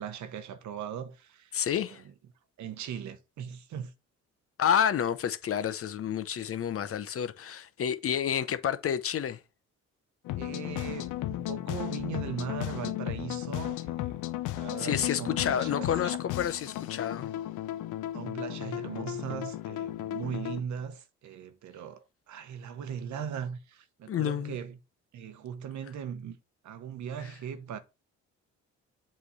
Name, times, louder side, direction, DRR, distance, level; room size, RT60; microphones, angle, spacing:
voice 1, 0.0-2.1 2.6-3.9 10.3-14.2 14.5-16.2 18.1-24.8 25.1-26.4 26.6-27.8, right 8 dB, 70° right, 0.9 m, -39 dB
voice 2, 1.5-2.0 4.6-9.4 14.8-17.3 24.1-24.6 27.2-27.3, left 9 dB, 50° left, 0.7 m, -29 dB
sound 1, 10.2-20.6, left 14 dB, 85° left, 0.5 m, -35 dB
7.5 x 3.2 x 4.2 m
cardioid pair, 90°, 30 cm